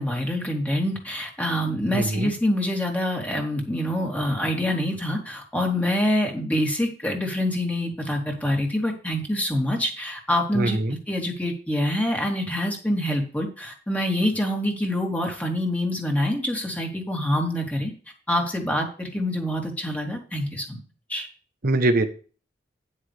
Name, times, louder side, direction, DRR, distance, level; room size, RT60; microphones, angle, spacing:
voice 1, 0.0-10.8 11.1-17.9 18.3-20.8 21.1-21.3, left 1 dB, 10° left, 0 dB, 2.9 m, -26 dB
voice 2, 1.9-2.3 10.5-10.9 21.6-22.1, right 2 dB, 55° right, 7 dB, 1.0 m, -22 dB
10.5 x 9.7 x 3.4 m, 0.37 s
head